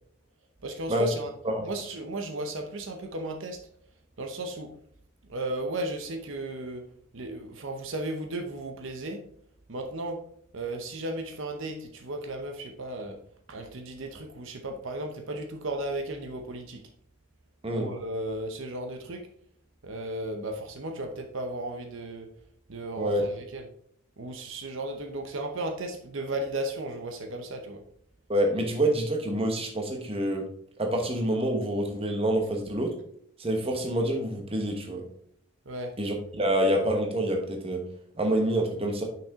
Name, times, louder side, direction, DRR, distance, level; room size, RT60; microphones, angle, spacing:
voice 1, 0.6-1.3 1.6-3.6 4.2-4.7 5.3-6.8 7.1-9.2 9.7-10.2 10.5-13.2 13.5-16.8 17.7-19.2 19.8-22.3 22.7-23.7 24.2-27.8 35.7-35.9, right 1 dB, 65° right, 4 dB, 0.8 m, -35 dB
voice 2, 28.3-30.4 30.8-32.9 33.4-35.0 36.0-37.8 38.2-39.0, right 1 dB, 25° right, 3 dB, 1.1 m, -27 dB
6.0 x 5.9 x 3.6 m, 0.66 s
head